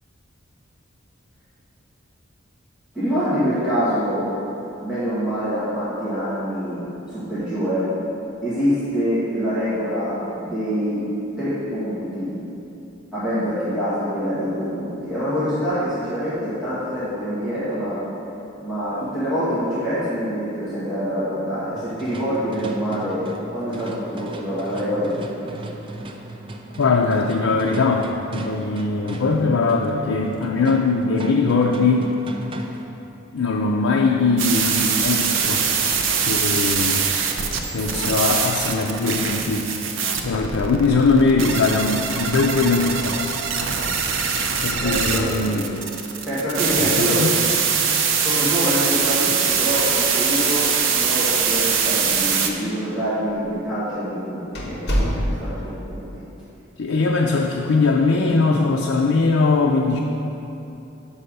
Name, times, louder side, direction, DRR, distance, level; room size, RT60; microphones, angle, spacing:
voice 1, 2.9-4.3 4.8-7.9 8.4-11.0 11.4-12.3 13.1-18.0 18.6-25.5 44.8-45.7 46.2-47.2 48.1-50.6 50.9-56.2, equal, 5° right, -14 dB, 1.8 m, -25 dB
sound 1, 21.8-33.0, right 1 dB, 25° right, 0.4 m, -36 dB
voice 2, 26.8-32.1 33.3-35.7 36.2-37.0 37.7-39.7 40.2-43.2 44.6-45.7 46.8-47.5 56.8-60.0, left 3 dB, 90° left, 0 dB, 0.5 m, -20 dB
sound 2, 34.4-52.5, right 6 dB, 70° right, 0.6 m, -22 dB
sound 3, 50.7-51.3 51.6-51.7 52.4-52.5 53.3-53.5 53.9-54.0 54.5-55.7, equal, 55° left, 1.3 m, -25 dB
5.6 x 5.4 x 6.6 m, 2.8 s
head